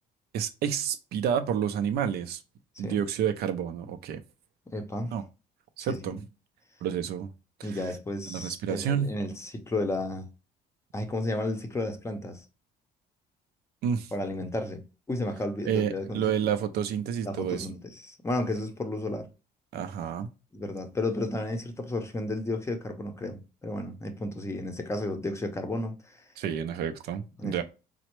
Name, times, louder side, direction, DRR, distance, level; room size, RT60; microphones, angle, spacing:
voice 1, 0.3-2.4 2.8-4.2 5.1-5.2 5.8-6.2 6.8-7.3 7.6-7.8 8.3-9.1 13.8-14.1 15.7-17.7 19.7-20.3 26.4-27.6, right 8 dB, 70° right, 0.5 m, -29 dB
voice 2, 4.7-5.1 5.9-6.2 7.6-10.3 10.9-12.4 14.1-14.8 15.1-16.5 17.2-19.3 20.5-26.2 27.4-27.6, left 2 dB, 15° left, 0.6 m, -33 dB
4.2 x 2.0 x 3.0 m
cardioid pair, 110°, 17 cm